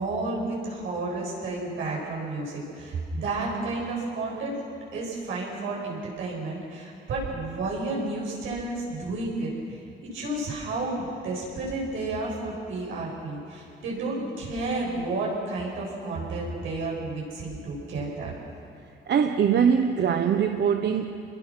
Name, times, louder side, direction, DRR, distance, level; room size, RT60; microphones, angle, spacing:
voice 1, 0.0-4.5 4.9-18.3, right 2 dB, 80° right, -4 dB, 7.8 m, -31 dB
voice 2, 19.1-21.4, right 7 dB, 60° right, 6 dB, 1.1 m, -23 dB
28.5 x 21.5 x 6.4 m, 2.7 s
cardioid pair, 90°, 20 cm